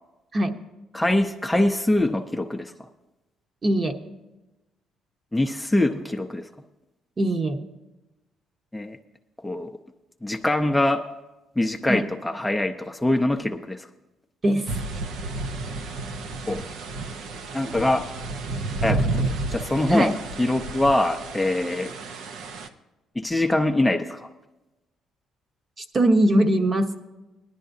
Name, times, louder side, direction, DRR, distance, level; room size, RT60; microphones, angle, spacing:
voice 1, 0.9-2.7 5.3-6.4 8.7-9.0 9.4-9.7 10.2-11.0 11.6-13.9 16.5-16.6 17.5-18.1 18.8-21.9 23.2-24.3, left 1 dB, 5° left, 4 dB, 0.6 m, -23 dB
voice 2, 3.6-4.0 7.2-7.6 11.9-12.0 14.4-14.7 19.9-20.1 25.8-27.0, right 1 dB, 35° right, 5 dB, 1.1 m, -21 dB
sound 1, 14.7-22.7, right 2 dB, 80° right, 0.7 m, -31 dB
18.5 x 11.5 x 2.7 m, 1.0 s
cardioid pair, 95°, 0 cm